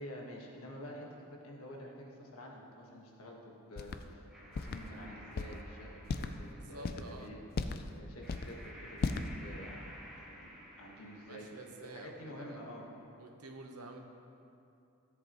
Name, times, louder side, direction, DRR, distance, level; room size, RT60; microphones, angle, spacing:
voice 1, 0.0-4.3 4.5-7.4 7.9-9.8 10.2-10.5 10.8-12.8, equal, 75° left, -1 dB, 1.5 m, -49 dB
sound 1, 3.8-4.0 4.6-4.8 5.4-5.6 6.0-6.3 6.8-7.1 7.5-7.9 8.2-8.5 9.0-9.3, left 4 dB, 45° left, 0.4 m, -35 dB
sound 2, 4.3-13.0, equal, ahead, 1.8 m, -54 dB
voice 2, 6.5-7.3 11.3-12.6 13.2-14.0, right 2 dB, 85° right, 3 dB, 1.0 m, -49 dB
14.0 x 7.9 x 3.0 m, 2.7 s
head